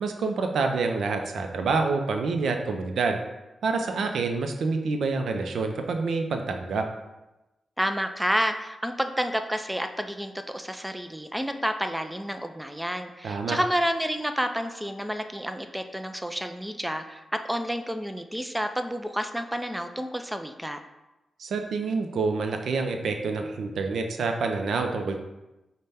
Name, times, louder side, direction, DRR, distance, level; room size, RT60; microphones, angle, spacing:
voice 1, 0.0-3.2 3.6-6.9 13.2-13.6 21.4-25.2, right 4 dB, 80° right, 5 dB, 0.4 m, -27 dB
voice 2, 7.8-17.2 17.5-20.8, equal, 5° right, 7 dB, 0.3 m, -30 dB
5.4 x 2.1 x 3.4 m, 1.0 s
cardioid pair, 65°, 0 cm